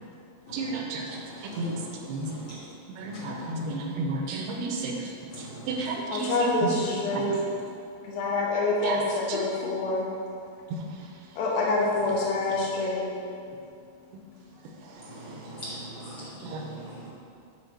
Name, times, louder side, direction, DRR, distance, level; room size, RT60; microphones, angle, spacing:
voice 1, 0.5-2.3 3.0-5.1 5.4-6.5 6.8-7.2 8.8-9.0 9.3-9.4 16.4-16.6, right 3 dB, 85° right, 1 dB, 2.8 m, -32 dB
voice 2, 1.4-1.9 2.2-2.5 3.0-3.6 5.3-5.7 15.1-17.1, right 1 dB, 45° left, -11 dB, 1.7 m, -41 dB
voice 3, 6.1-7.4 8.0-10.1 11.4-13.1, left 2 dB, 75° left, -4 dB, 2.6 m, -26 dB
9.9 x 3.9 x 4.5 m, 2.4 s
omnidirectional pair, 4.7 m